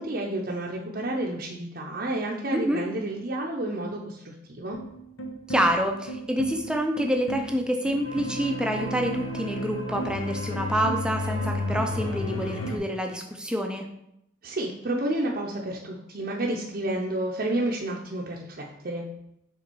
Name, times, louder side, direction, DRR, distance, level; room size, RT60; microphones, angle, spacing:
voice 1, 0.0-4.8 14.4-19.0, right 1 dB, 45° right, -3 dB, 0.7 m, -30 dB
sound 1, 4.7-12.8, left 1 dB, 75° left, 1.1 m, -32 dB
voice 2, 5.5-13.9, equal, 5° right, 3 dB, 0.5 m, -27 dB
6.7 x 3.8 x 4.6 m, 0.79 s
head